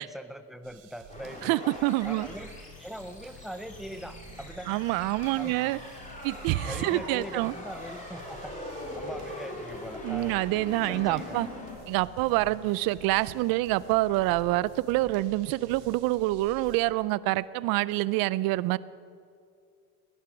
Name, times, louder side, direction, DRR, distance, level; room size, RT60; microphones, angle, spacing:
voice 1, 0.0-1.5 2.0-2.5 2.8-4.8 5.4-5.6 6.7-8.5 9.0-10.4 10.9-11.4, right 1 dB, ahead, 10 dB, 0.5 m, -41 dB
sound 1, 0.6-16.8, right 6 dB, 70° right, 2.3 m, -53 dB
sound 2, 1.1-11.7, left 1 dB, 15° left, 3.0 m, -42 dB
voice 2, 1.4-2.3 4.7-5.8 6.2-7.5 10.0-11.5 11.9-18.8, right 18 dB, 55° right, 19 dB, 0.5 m, -26 dB
sound 3, 2.2-16.4, left 5 dB, 65° left, 1.6 m, -52 dB
17.0 x 11.0 x 6.1 m, 2.4 s
supercardioid pair, 125°, 44 cm